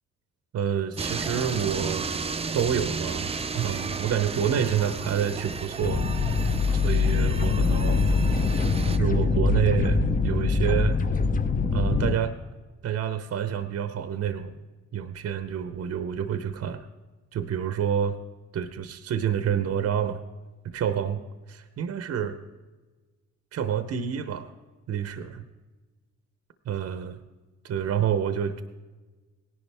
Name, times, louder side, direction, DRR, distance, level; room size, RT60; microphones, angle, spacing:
voice 1, 0.5-2.1 2.5-6.1 6.7-8.1 9.0-11.0 11.7-12.3 12.8-14.6 14.9-16.9 17.3-18.2 18.5-20.2 20.6-21.2 21.5-22.4 23.5-24.5 24.9-25.4 26.7-27.2 27.6-28.6, right 8 dB, 55° right, 10 dB, 0.8 m, -28 dB
sound 1, 1.0-9.0, right 4 dB, 20° right, 0.5 m, -33 dB
sound 2, 5.8-12.1, left 4 dB, 25° left, 0.7 m, -23 dB
17.0 x 11.0 x 3.4 m, 1.3 s
cardioid pair, 90°, 30 cm